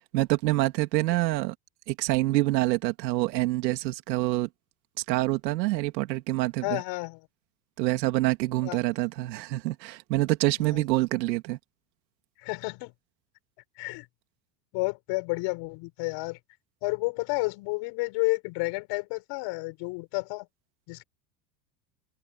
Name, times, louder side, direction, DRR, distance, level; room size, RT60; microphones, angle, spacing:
voice 1, 0.1-1.5 1.9-4.5 5.1-6.8 7.8-11.6, right 18 dB, 80° right, 2.8 m, -26 dB
voice 2, 6.6-7.2 8.6-8.8 10.7-10.8 12.4-12.9 13.8-14.1 14.7-16.4 16.8-20.5 20.9-21.0, left 26 dB, 55° left, 6.8 m, -31 dB
supercardioid pair, 140°, 50 cm